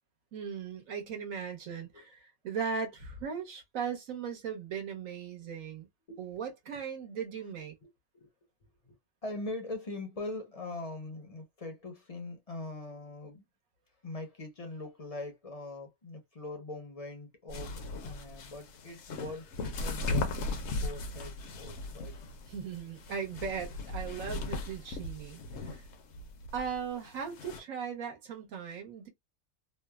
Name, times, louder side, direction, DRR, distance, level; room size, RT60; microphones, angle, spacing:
voice 1, 0.3-5.9 6.2-7.8 22.5-25.4 25.7-25.8 26.5-29.1, right 6 dB, 70° right, 1.3 m, -38 dB
voice 2, 7.8-8.3 8.8-9.0 9.2-13.4 14.0-17.7 18.0-22.1, left 2 dB, 35° left, 0.6 m, -42 dB
sound 1, 17.5-27.6, left 2 dB, 65° left, 0.8 m, -38 dB
3.1 x 2.0 x 2.2 m
omnidirectional pair, 1.5 m